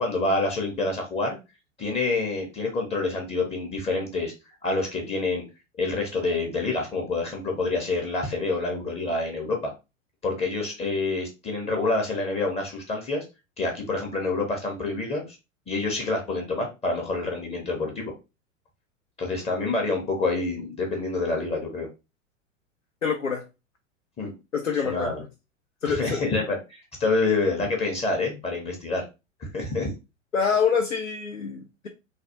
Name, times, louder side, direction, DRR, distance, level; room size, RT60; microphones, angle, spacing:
voice 1, 0.0-1.4 1.8-4.3 4.6-5.4 5.8-9.7 10.2-13.2 13.6-15.2 15.7-18.1 19.2-21.9 24.2-24.3 24.8-25.2 25.9-29.0 29.4-29.9, left 3 dB, 15° left, 1 dB, 0.7 m, -27 dB
voice 2, 23.0-23.4 24.5-25.1 25.8-26.2 30.3-31.9, left 6 dB, 90° left, 2 dB, 0.6 m, -26 dB
3.2 x 2.2 x 2.7 m, 0.27 s
figure-of-eight pair, 90°, 38 cm